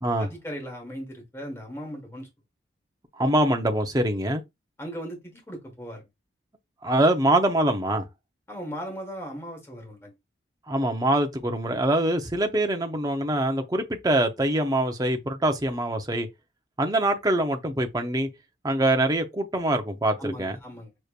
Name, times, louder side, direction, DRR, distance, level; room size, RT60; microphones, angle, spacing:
voice 1, 0.2-2.3 4.8-6.1 8.5-10.1 20.2-20.9, equal, 15° left, 1.4 m, -37 dB
voice 2, 3.1-4.4 6.8-8.1 10.7-16.3 16.8-18.3 18.6-20.6, right 1 dB, 20° right, 0.7 m, -24 dB
6.6 x 3.1 x 2.4 m
head